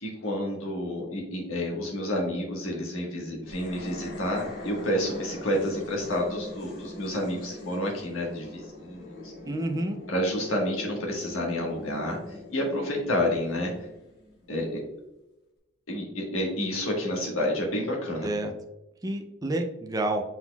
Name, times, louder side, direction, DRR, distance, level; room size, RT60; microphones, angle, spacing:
voice 1, 0.0-9.3 10.1-13.9 14.5-14.8 15.9-18.3, left 1 dB, 85° left, -1 dB, 1.4 m, -29 dB
sound 1, 3.4-14.8, left 2 dB, 50° left, 1.3 m, -42 dB
voice 2, 9.5-10.0 18.2-18.5 19.0-20.2, right 1 dB, 20° right, 5 dB, 0.4 m, -29 dB
5.6 x 4.1 x 2.3 m, 0.96 s
head